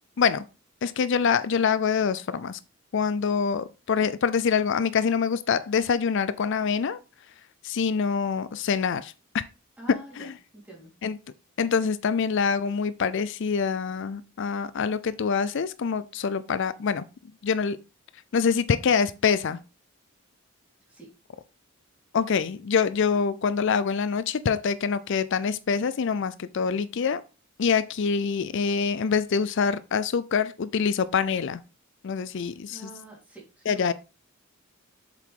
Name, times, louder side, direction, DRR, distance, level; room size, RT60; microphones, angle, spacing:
voice 1, 0.8-2.6 2.9-7.0 7.6-9.4 9.9-10.4 11.0-11.2 11.6-17.0 17.4-17.8 18.3-19.6 22.1-27.2 27.6-31.6 32.0-32.9 33.7-33.9, left 6 dB, 55° left, 0.4 m, -25 dB
voice 2, 9.8-10.3 10.6-10.9 20.9-21.1 32.7-33.9, right 2 dB, 5° right, 3.9 m, -45 dB
7.6 x 7.4 x 3.7 m
head